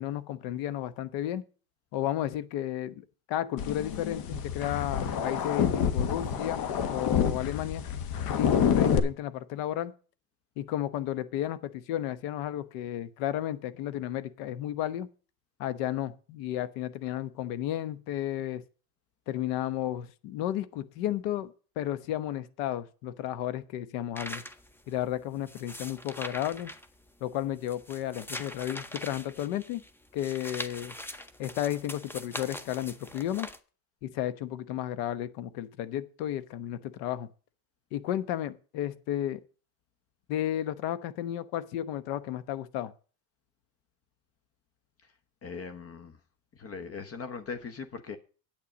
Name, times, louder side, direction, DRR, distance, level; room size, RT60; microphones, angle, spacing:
voice 1, 0.0-1.4 1.9-7.8 8.4-9.9 10.6-15.1 15.6-18.6 19.3-24.4 24.9-26.7 27.2-29.8 30.1-30.9 31.4-33.5 34.0-37.3 37.9-39.4 40.3-42.9, left 12 dB, 75° left, 1.1 m, -33 dB
sound 1, 3.6-9.0, left 7 dB, 55° left, 1.4 m, -28 dB
sound 2, 24.2-33.6, left 1 dB, 5° left, 0.7 m, -42 dB
voice 2, 45.4-46.2 46.5-48.2, left 5 dB, 35° left, 1.0 m, -40 dB
8.7 x 8.6 x 5.1 m
cardioid pair, 125°, 43 cm